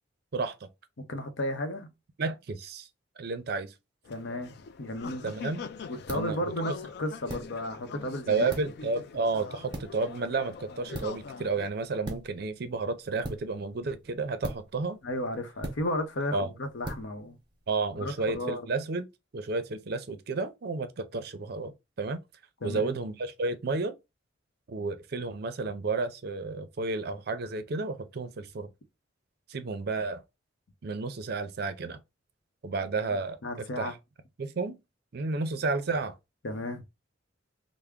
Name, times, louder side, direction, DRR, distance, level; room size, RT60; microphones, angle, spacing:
voice 1, 1.0-1.9 4.1-5.2 5.9-6.7 7.0-8.4 15.0-17.4 17.9-18.7 22.6-23.0 33.0-33.2 33.4-33.9 36.4-36.8, left 1 dB, 75° left, 0.7 m, -34 dB
voice 2, 2.2-2.9 3.2-3.7 5.2-5.6 6.1-6.4 6.7-6.8 8.3-15.0 16.3-16.5 17.7-19.1 19.3-21.7 22.0-22.2 22.6-23.9 24.7-28.7 29.5-30.2 30.8-32.0 32.6-33.4 33.8-33.9 34.4-34.8 35.1-36.1, right 3 dB, 55° right, 0.5 m, -31 dB
sound 1, 4.0-11.7, left 6 dB, 55° left, 0.3 m, -43 dB
sound 2, 4.9-18.3, right 1 dB, 25° right, 0.8 m, -44 dB
3.4 x 2.0 x 3.5 m
head